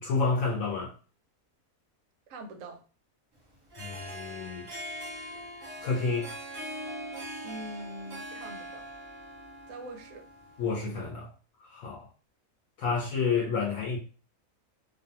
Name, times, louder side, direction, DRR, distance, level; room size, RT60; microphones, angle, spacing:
voice 1, 0.0-0.9 3.8-4.7 5.8-6.3 10.6-11.3 11.6-12.1 12.8-14.0, left 4 dB, 75° left, 0.9 m, -29 dB
voice 2, 2.3-2.8 7.4-8.9 9.7-10.3 12.9-13.0, right 1 dB, 70° right, 0.9 m, -43 dB
Harp, 3.6-10.9, equal, 25° right, 0.5 m, -42 dB
2.5 x 2.1 x 2.8 m
omnidirectional pair, 1.5 m